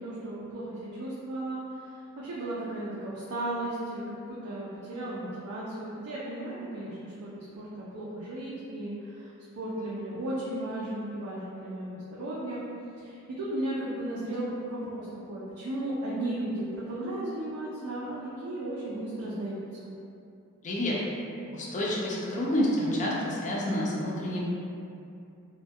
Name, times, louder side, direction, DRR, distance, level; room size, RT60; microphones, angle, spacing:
voice 1, 0.0-1.6 2.2-4.0 4.3-9.3 9.6-12.6 13.0-19.9, right 1 dB, 85° right, -8 dB, 0.4 m, -35 dB
voice 2, 20.6-21.0 21.5-24.4, left 1 dB, 35° left, -5 dB, 0.4 m, -28 dB
2.2 x 2.1 x 2.6 m, 2.6 s
head